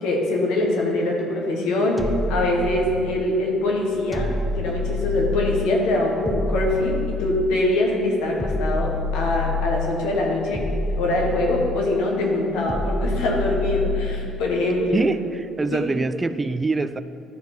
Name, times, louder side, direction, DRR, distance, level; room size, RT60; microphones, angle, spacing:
voice 1, 0.0-4.3 4.5-10.6 11.0-15.0 15.7-15.8, left 1 dB, 70° left, -1 dB, 1.5 m, -23 dB
sound 1, 2.0-3.3 4.1-5.8 6.3-7.7 8.4-10.0 10.5-11.9 12.7-14.3, left 2 dB, 5° right, 0.9 m, -27 dB
voice 2, 14.9-17.0, right 3 dB, 25° right, 13 dB, 0.3 m, -24 dB
11.5 x 4.6 x 4.4 m, 2.6 s
hypercardioid pair, 55°, 0 cm